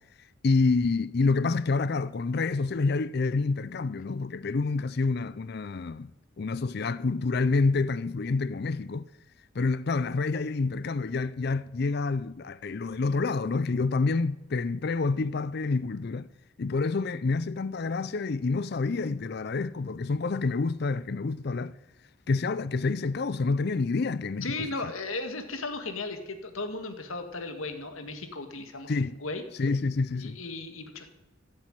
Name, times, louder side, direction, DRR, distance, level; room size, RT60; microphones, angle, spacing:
voice 1, 0.4-6.1 6.4-9.1 9.5-16.3 16.6-21.7 22.3-24.9 28.9-29.2 29.6-30.4, left 3 dB, 50° left, 0.4 m, -28 dB
voice 2, 24.4-28.9 29.2-29.4 30.2-31.1, left 3 dB, 75° left, 2.0 m, -36 dB
15.5 x 7.7 x 8.9 m
head